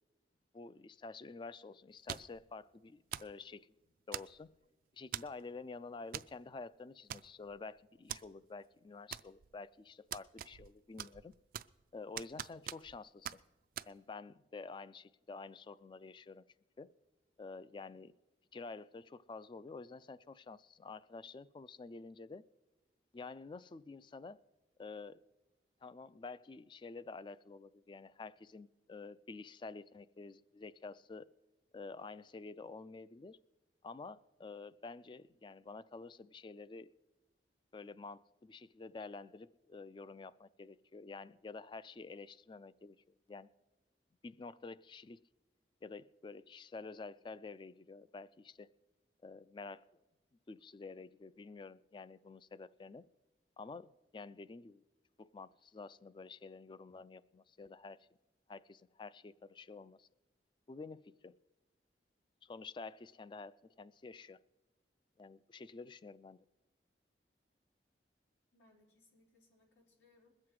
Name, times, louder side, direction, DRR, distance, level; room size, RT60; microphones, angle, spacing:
voice 1, 0.5-3.7 4.1-4.5 4.9-11.3 11.9-13.4 13.9-16.4 16.8-16.9 17.4-18.1 18.5-22.4 23.1-24.4 24.8-25.2 25.8-31.3 31.7-33.4 33.8-36.9 37.7-43.5 44.2-45.2 45.8-48.7 49.2-49.8 50.5-53.0 53.6-54.8 55.2-58.0 58.5-60.1 60.7-61.3 62.4-64.4 65.2-66.4, left 4 dB, 25° left, 0.3 m, -49 dB
sound 1, 2.1-2.4 3.1-3.4 4.1-4.6 5.1-5.4 6.1-6.3 6.6-6.7 7.1-7.6 8.1-8.2 9.1-9.6 10.1-10.7 11.0-11.8 12.2-13.0 13.2-13.4 13.8-13.9, right 10 dB, 50° right, 0.3 m, -43 dB
voice 2, 68.5-70.5, left 2 dB, 90° left, 4.5 m, -69 dB
21.0 x 7.6 x 4.7 m
head